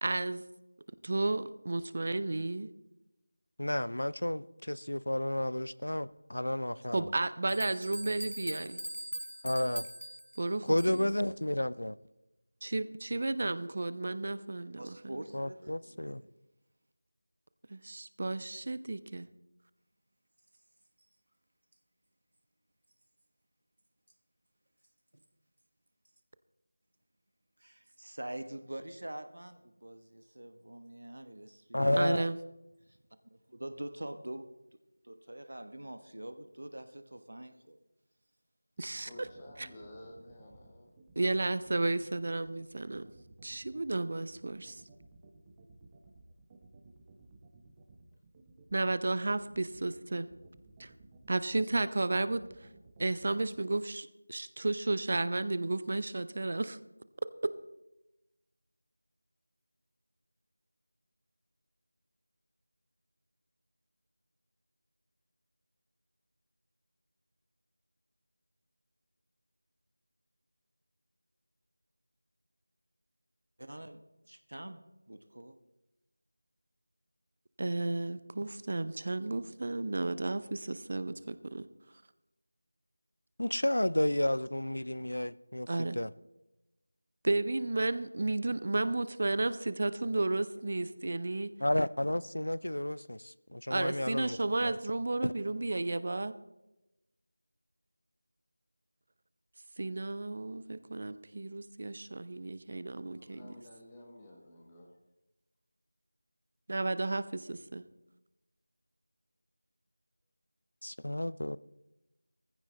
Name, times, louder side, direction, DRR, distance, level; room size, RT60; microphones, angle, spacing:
voice 1, 0.0-0.4 1.0-2.7 6.9-8.8 10.4-11.1 12.6-15.1 17.7-19.3 32.0-32.3 38.8-39.1 39.6-39.7 41.2-43.1 43.4-44.8 48.7-50.3 50.8-50.9 51.3-52.7 53.0-56.8 77.6-81.7 85.7-86.0 87.2-91.5 93.7-96.3 99.8-103.5 106.7-107.8, right 2 dB, 40° right, 14 dB, 0.6 m, -33 dB
voice 2, 3.6-7.1 9.4-9.9 10.7-12.0 15.3-16.2 31.7-32.3 83.4-86.1 91.6-94.7 95.2-95.3 110.8-111.6, left 1 dB, 75° left, 19 dB, 0.5 m, -32 dB
sound 1, 7.5-11.2, equal, 90° right, 0.4 m, -41 dB
voice 3, 14.8-16.3 25.1-25.2 27.6-32.0 32.9-33.0 33.2-37.8 73.6-75.5, right 1 dB, 65° right, 10 dB, 1.2 m, -45 dB
sound 2, 38.8-53.5, right 3 dB, 15° right, 1.2 m, -57 dB
voice 4, 39.0-40.9 46.0-46.1 103.1-105.0, left 1 dB, 15° left, -1 dB, 1.5 m, -52 dB
17.0 x 15.0 x 3.3 m, 0.98 s
figure-of-eight pair, 170°, 0 cm